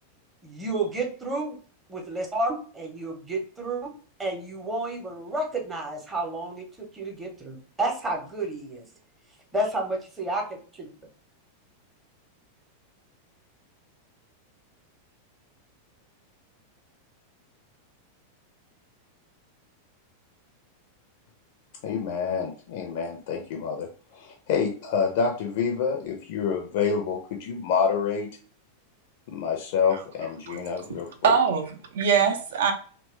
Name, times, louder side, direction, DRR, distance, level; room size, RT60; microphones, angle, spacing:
voice 1, 0.4-1.6 1.9-3.9 4.2-8.8 9.5-10.9, right 2 dB, 15° right, 1 dB, 0.7 m, -31 dB
voice 2, 21.8-28.3 29.3-31.3, left 6 dB, 50° left, 2 dB, 0.4 m, -27 dB
voice 3, 31.2-32.7, right 6 dB, 60° right, 5 dB, 0.5 m, -23 dB
2.8 x 2.2 x 3.0 m, 0.42 s
figure-of-eight pair, 90°, 0 cm